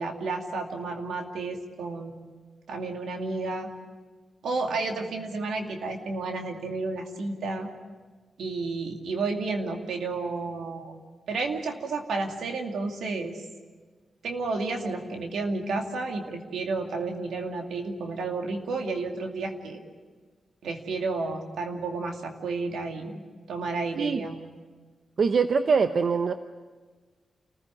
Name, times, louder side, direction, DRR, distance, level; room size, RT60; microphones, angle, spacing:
voice 1, 0.0-2.3 2.7-3.7 4.4-7.7 8.4-10.9 11.3-13.4 14.2-19.8 20.6-23.2 23.5-24.4, right 3 dB, 90° right, 3 dB, 2.5 m, -31 dB
voice 2, 25.2-26.3, right 5 dB, 65° right, 8 dB, 0.9 m, -23 dB
28.5 x 15.0 x 9.8 m, 1.4 s
cardioid pair, 55°, 0 cm